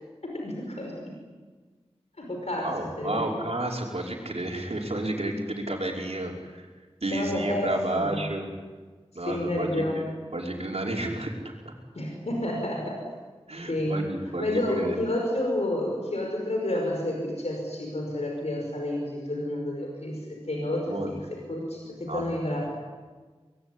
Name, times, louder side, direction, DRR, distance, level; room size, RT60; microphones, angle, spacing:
voice 1, 0.2-1.2 2.2-3.3 7.1-8.3 9.3-10.0 12.0-13.1 13.7-14.1 14.4-22.7, left 1 dB, 85° left, 0 dB, 5.4 m, -30 dB
voice 2, 2.6-6.7 7.0-8.5 9.1-10.1 10.3-11.7 13.5-15.0 20.9-21.4 22.0-22.6, right 1 dB, 70° right, -1 dB, 5.3 m, -31 dB
24.5 x 21.5 x 9.9 m, 1.4 s
wide cardioid pair, 50°, 11 cm